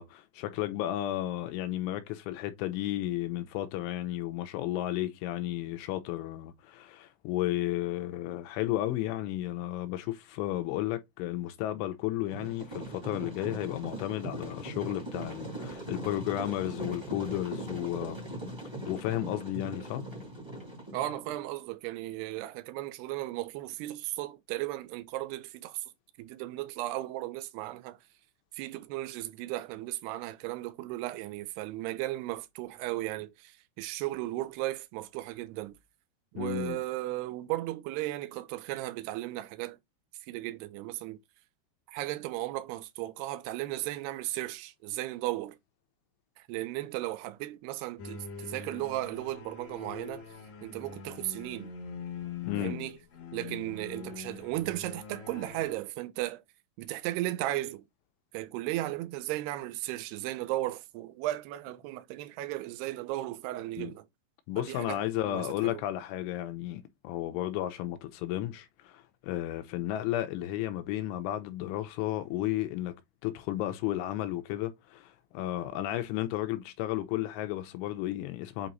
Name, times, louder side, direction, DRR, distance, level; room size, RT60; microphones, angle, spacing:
voice 1, 0.0-18.2 18.9-20.0 36.4-36.8 52.4-52.8 63.8-63.9 64.5-73.0 73.2-78.7, left 14 dB, 80° left, 3.2 m, -33 dB
sound 1, 12.3-21.4, right 1 dB, 15° right, 1.0 m, -40 dB
voice 2, 20.9-25.8 26.2-28.0 28.5-35.8 36.3-39.8 40.3-41.2 41.9-45.6 46.4-50.3 50.6-51.7 52.6-53.0 53.3-56.4 56.8-57.8 58.3-64.1 64.6-65.8, right 16 dB, 80° right, 2.4 m, -35 dB
sound 2, 48.0-55.7, left 6 dB, 60° left, 1.8 m, -43 dB
8.4 x 3.0 x 4.0 m
omnidirectional pair, 5.6 m